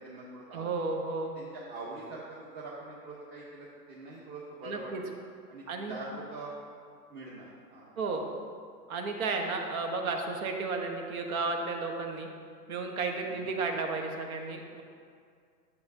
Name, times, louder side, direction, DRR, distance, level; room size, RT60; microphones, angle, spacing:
voice 1, 0.0-0.8 1.3-5.1 5.5-6.5 7.1-8.2 13.2-13.5, right 2 dB, 20° right, -6 dB, 1.0 m, -44 dB
voice 2, 0.5-1.3 4.6-5.0 5.7-6.0 8.0-8.3 8.9-12.3 12.7-14.8, right 3 dB, 55° right, 3 dB, 1.3 m, -33 dB
11.5 x 7.1 x 2.7 m, 2.2 s
hypercardioid pair, 120°, 49 cm